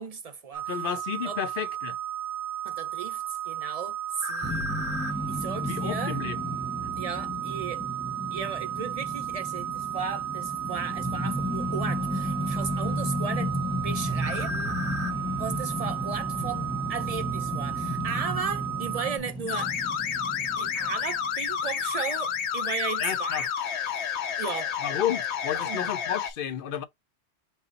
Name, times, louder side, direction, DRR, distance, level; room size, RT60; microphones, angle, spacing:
voice 1, 0.0-0.7 1.2-1.4 2.6-4.6 5.3-6.2 7.0-7.8 8.3-13.6 13.8-14.7 15.4-19.7 20.6-23.5 24.4-24.7 25.5-25.9, right 5 dB, 50° right, 0.5 m, -35 dB
sound 1, 0.5-19.2, right 9 dB, 80° right, 1.2 m, -34 dB
voice 2, 0.7-2.0 5.6-6.4 23.0-23.5 24.8-26.8, left 9 dB, 60° left, 0.8 m, -31 dB
sound 2, 4.4-21.6, left 1 dB, 5° left, 0.9 m, -33 dB
sound 3, 19.5-26.3, left 7 dB, 85° left, 1.0 m, -30 dB
5.5 x 2.0 x 3.9 m
omnidirectional pair, 1.1 m